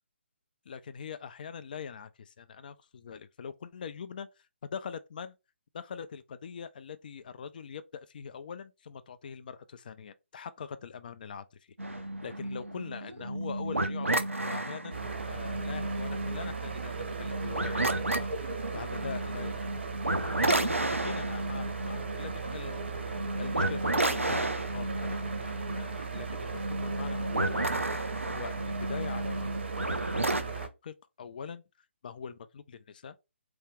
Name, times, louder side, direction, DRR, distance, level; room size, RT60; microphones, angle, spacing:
voice 1, 0.7-5.4 5.7-11.6 11.8-19.7 20.2-29.5 29.9-31.6 32.0-33.1, left 6 dB, 40° left, 0.3 m, -43 dB
sound 1, 11.8-30.4, right 1 dB, 90° right, 0.6 m, -32 dB
sound 2, 14.9-30.7, right 5 dB, 60° right, 0.8 m, -37 dB
3.5 x 2.3 x 3.3 m
figure-of-eight pair, 140°, 7 cm